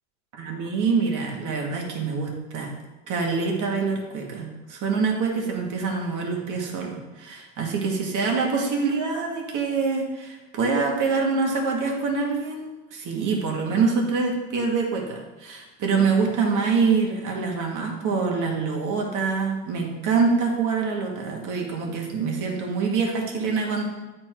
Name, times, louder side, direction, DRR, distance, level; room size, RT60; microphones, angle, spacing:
voice 1, 0.4-2.7 3.1-23.8, right 4 dB, 45° right, 0 dB, 2.0 m, -25 dB
8.6 x 4.4 x 4.6 m, 1.1 s
supercardioid pair, 105°, 44 cm